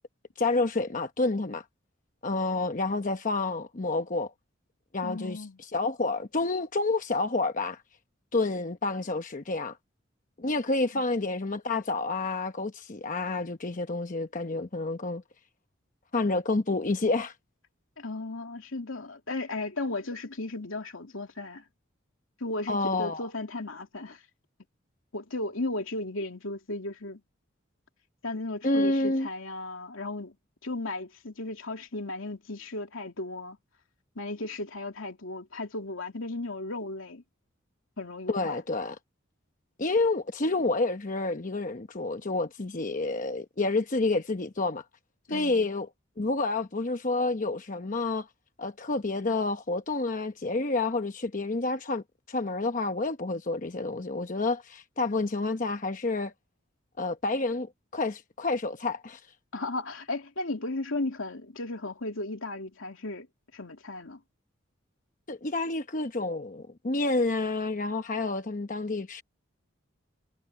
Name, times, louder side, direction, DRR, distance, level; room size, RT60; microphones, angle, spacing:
voice 1, 0.4-1.6 2.2-4.3 4.9-7.8 8.3-9.8 10.4-15.2 16.1-17.3 22.7-23.2 28.6-29.3 38.3-39.0 39.8-44.8 45.3-45.9 46.2-48.3 48.6-56.3 57.0-59.2 65.3-69.2, left 3 dB, 40° left, 0.9 m, -29 dB
voice 2, 5.0-5.6 10.9-11.0 18.0-21.6 22.4-24.2 25.1-27.2 28.2-30.4 30.6-33.6 34.2-37.2 38.0-38.6 45.3-45.7 59.5-63.3 63.5-64.2, left 2 dB, 85° left, 2.7 m, -35 dB
head